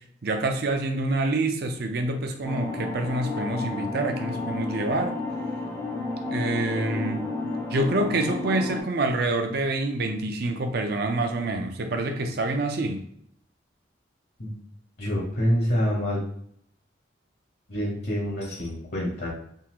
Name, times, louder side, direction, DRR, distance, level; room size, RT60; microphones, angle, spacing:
voice 1, 0.2-5.2 6.3-7.2 7.7-13.0, right 2 dB, 55° right, 5 dB, 0.5 m, -27 dB
sound 1, 2.4-8.8, left 3 dB, 15° left, 0.5 m, -31 dB
voice 2, 15.0-16.2 17.7-19.3, equal, 55° left, -3 dB, 1.0 m, -26 dB
3.6 x 2.4 x 2.9 m, 0.69 s
head